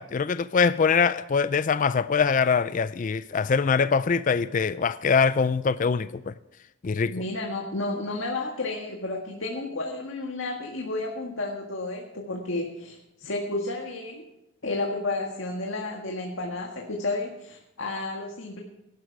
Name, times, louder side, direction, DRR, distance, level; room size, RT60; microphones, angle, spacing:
voice 1, 0.0-6.3 6.8-7.1, left 5 dB, 40° left, 0.4 m, -23 dB
voice 2, 7.1-14.3 14.6-18.6, left 2 dB, 80° left, 1.8 m, -32 dB
18.0 x 11.5 x 4.8 m
head